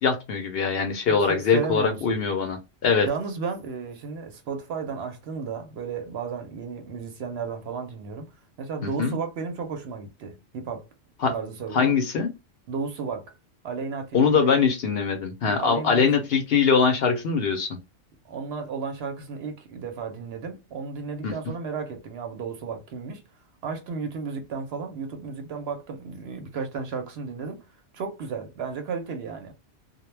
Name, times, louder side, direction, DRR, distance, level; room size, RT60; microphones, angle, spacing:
voice 1, 0.0-3.1 8.8-9.2 11.2-11.3 11.7-12.3 14.1-17.8 21.2-21.3, left 5 dB, 65° left, 0.7 m, -22 dB
voice 2, 1.1-2.1 3.0-8.3 8.6-10.8 11.3-11.9 12.7-13.3 13.6-14.5 15.4-16.0 18.2-23.2 23.6-27.6 27.9-29.5, right 5 dB, 65° right, 0.8 m, -33 dB
2.1 x 2.1 x 3.1 m
omnidirectional pair, 1.3 m